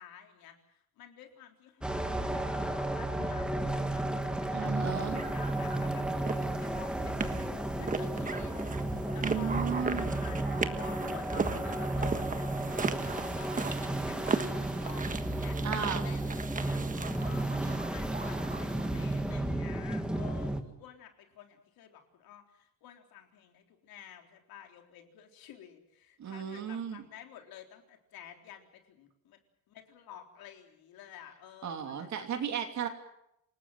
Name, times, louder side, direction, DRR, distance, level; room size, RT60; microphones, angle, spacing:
voice 1, 0.0-8.7 9.1-13.7 14.0-29.4 29.7-32.2, left 10 dB, 90° left, 4 dB, 3.9 m, -52 dB
sound 1, 1.8-20.6, right 1 dB, 5° right, 1.8 m, -33 dB
voice 2, 4.5-5.2 9.2-10.1 15.6-16.0 26.2-27.0 31.6-32.9, right 7 dB, 55° right, 5 dB, 2.9 m, -35 dB
sound 2, 5.1-19.2, right 4 dB, 20° right, 1.5 m, -38 dB
28.0 x 19.0 x 7.5 m, 0.79 s
cardioid pair, 155°, 35 cm